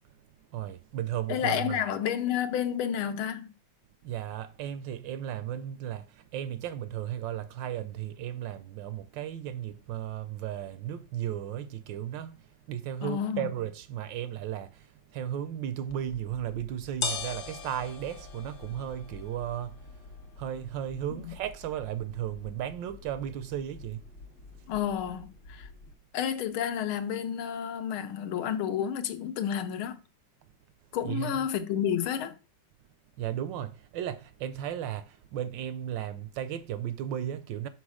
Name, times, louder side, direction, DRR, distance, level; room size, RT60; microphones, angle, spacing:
voice 1, 0.5-1.8 4.0-12.4 12.7-24.1 24.5-24.7 31.0-31.3 33.2-37.7, right 10 dB, 75° right, 1.2 m, -35 dB
voice 2, 1.3-3.5 13.0-13.5 21.2-21.3 24.7-25.7 26.1-30.0 30.9-32.3, left 9 dB, 85° left, 1.7 m, -30 dB
sound 1, 15.9-25.9, left 5 dB, 70° left, 1.7 m, -42 dB
6.3 x 5.4 x 4.9 m
omnidirectional pair, 2.2 m